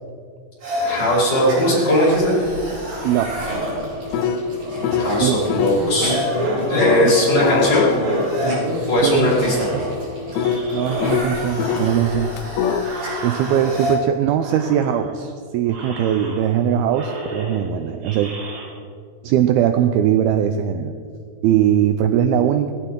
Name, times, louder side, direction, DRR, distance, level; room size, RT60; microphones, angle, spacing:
sound 1, 0.6-13.9, equal, 50° right, 6.3 m, -27 dB
voice 1, 0.8-2.3 5.0-6.2 6.7-7.9 8.8-9.6, equal, 40° left, -7 dB, 5.8 m, -18 dB
voice 2, 3.0-3.6 5.2-5.4 9.0-9.9 10.7-12.3 13.2-18.3 19.2-20.9 21.4-22.7, right 10 dB, 85° right, 7 dB, 2.2 m, -20 dB
sound 2, 3.1-5.2 5.5-5.8 6.8-11.9 12.4-12.8, left 7 dB, 85° left, 2.9 m, -25 dB
sound 3, 9.2-11.3 11.6-14.0 14.4-15.3 15.7-16.6 16.9-18.7, right 2 dB, 70° right, 5.1 m, -35 dB
18.5 x 16.0 x 3.8 m, 2.1 s
omnidirectional pair, 5.0 m